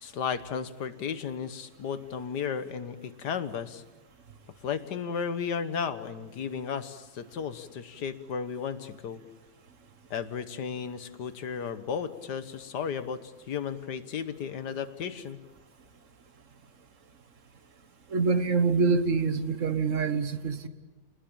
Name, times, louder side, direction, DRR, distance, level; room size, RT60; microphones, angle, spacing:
voice 1, 0.0-3.8 4.6-9.2 10.1-15.4, left 7 dB, 75° left, 12 dB, 1.8 m, -34 dB
voice 2, 18.1-20.7, right 4 dB, 50° right, 11 dB, 1.5 m, -25 dB
28.5 x 20.5 x 8.8 m, 1.2 s
omnidirectional pair, 1.8 m